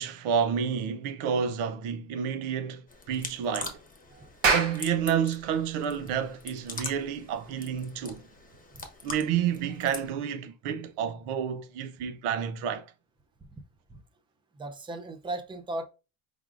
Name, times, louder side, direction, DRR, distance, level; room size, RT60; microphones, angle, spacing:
voice 1, 0.0-2.8 3.1-3.8 4.5-8.2 9.0-12.8, right 8 dB, 85° right, 0.7 m, -29 dB
sound 1, 2.9-10.1, left 4 dB, 15° left, 0.9 m, -43 dB
Clapping, 4.2-9.1, right 4 dB, 70° right, 1.4 m, -31 dB
voice 2, 14.6-15.8, right 2 dB, 10° right, 0.4 m, -36 dB
4.7 x 3.5 x 2.4 m
cardioid pair, 115°, 48 cm